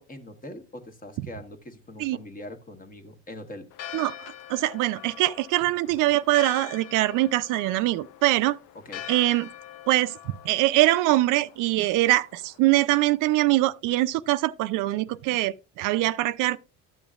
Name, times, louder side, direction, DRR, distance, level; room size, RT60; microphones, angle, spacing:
voice 1, 0.0-3.7 8.7-9.1, left 1 dB, 25° left, 1.3 m, -42 dB
Church bell, 3.7-12.6, left 11 dB, 85° left, 0.7 m, -44 dB
voice 2, 4.5-8.6 9.1-9.5 9.9-10.2 10.4-16.6, right 16 dB, 70° right, 0.5 m, -23 dB
12.5 x 7.0 x 2.4 m
supercardioid pair, 100°, 33 cm